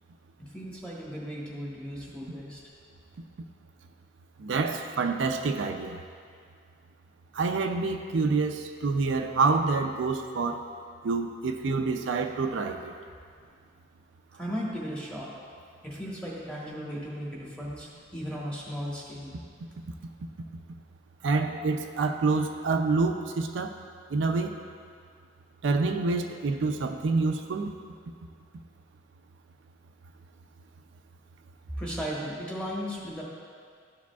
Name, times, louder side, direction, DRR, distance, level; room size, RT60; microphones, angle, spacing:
voice 1, 0.4-2.6 14.4-15.3 15.8-19.3 31.8-33.2, equal, 5° left, -6 dB, 1.2 m, -36 dB
voice 2, 4.4-6.0 7.3-10.7 11.0-12.9 21.2-23.7 24.1-24.5 25.6-27.7, right 4 dB, 75° right, 4 dB, 0.4 m, -27 dB
12.5 x 4.8 x 2.3 m, 2.2 s
head